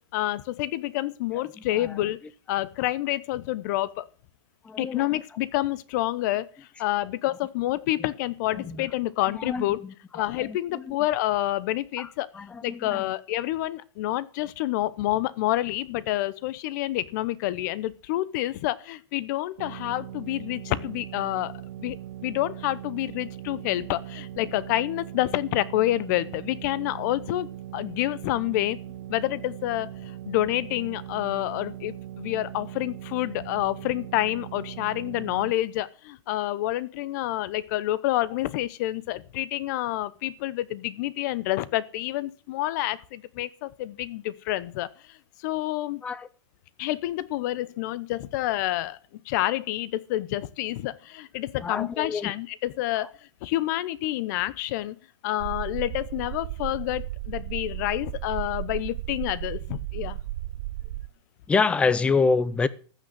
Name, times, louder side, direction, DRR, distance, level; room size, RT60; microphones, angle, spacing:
voice 1, 0.1-2.2 2.5-4.0 4.8-6.5 6.8-9.8 10.1-12.3 12.6-21.5 21.8-22.0 22.2-28.8 29.1-46.0 46.8-49.0 49.3-53.1 53.4-55.0 55.2-60.2, left 15 dB, 40° left, 0.8 m, -28 dB
voice 2, 4.6-5.2 8.5-8.9 9.3-11.0 12.0-12.1 12.3-13.1 46.0-46.3 51.6-52.3 53.0-53.1 61.5-62.7, left 4 dB, 10° left, 0.5 m, -27 dB
sound 1, 19.6-35.5, right 12 dB, 55° right, 0.9 m, -40 dB
sound 2, 55.4-61.1, right 16 dB, 40° right, 0.5 m, -34 dB
14.5 x 6.3 x 7.6 m
hypercardioid pair, 150°, 15 cm